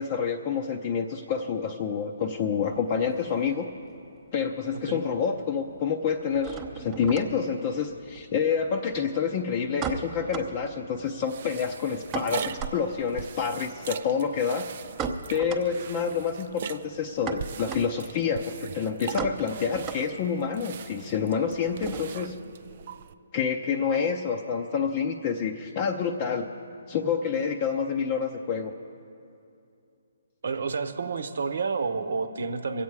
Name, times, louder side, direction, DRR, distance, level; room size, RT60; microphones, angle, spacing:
voice 1, 0.0-3.7 4.3-14.7 15.3-22.4 23.3-26.5 26.9-28.7, left 6 dB, 35° left, 2 dB, 0.7 m, -28 dB
sound 1, 2.5-4.2 4.4-5.1 5.4-22.4, right 5 dB, 20° right, 0.8 m, -39 dB
sound 2, 11.1-23.1, right 8 dB, 50° right, 0.4 m, -41 dB
voice 2, 30.4-32.8, right 4 dB, 70° right, 10 dB, 0.9 m, -30 dB
23.0 x 8.3 x 4.8 m, 2.6 s
hypercardioid pair, 150°, 0 cm